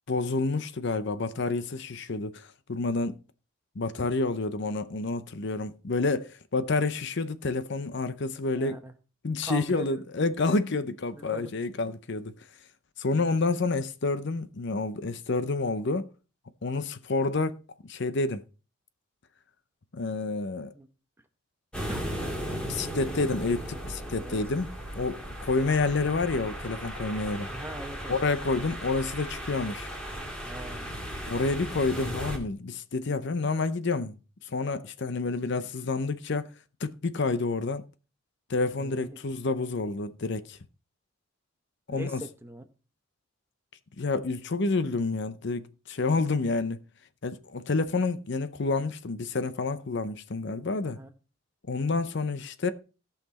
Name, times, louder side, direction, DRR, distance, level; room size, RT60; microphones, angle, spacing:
voice 1, 0.1-3.2 3.8-8.8 9.2-12.3 13.0-16.1 16.6-17.6 17.9-18.4 19.9-20.7 22.5-27.5 28.1-29.9 31.3-34.2 34.5-36.5 36.8-37.8 38.5-40.6 41.9-42.2 44.0-46.8 47.2-51.0 51.7-52.7, left 3 dB, 55° left, 0.7 m, -29 dB
voice 2, 8.4-8.9 9.4-10.1 11.1-11.5 20.7-20.9 21.9-22.0 24.2-24.4 27.5-28.2 30.4-31.1 38.8-39.2 41.9-42.6 50.8-51.1, right 1 dB, 10° right, 1.0 m, -41 dB
sound 1, 21.7-32.4, equal, 5° left, 2.2 m, -36 dB
17.0 x 5.8 x 4.2 m
head